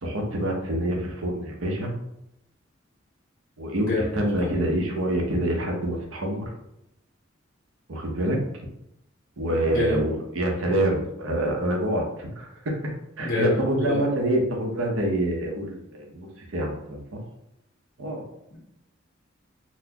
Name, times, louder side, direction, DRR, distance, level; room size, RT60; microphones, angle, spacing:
voice 1, 0.0-1.9 3.6-6.5 7.9-8.4 9.4-12.8 13.2-17.2 18.0-18.2, right 1 dB, 75° right, 1 dB, 0.7 m, -26 dB
voice 2, 3.8-4.5 9.7-10.0 13.2-14.0, left 3 dB, 55° left, -5 dB, 0.7 m, -27 dB
4.0 x 2.1 x 2.8 m, 0.81 s
head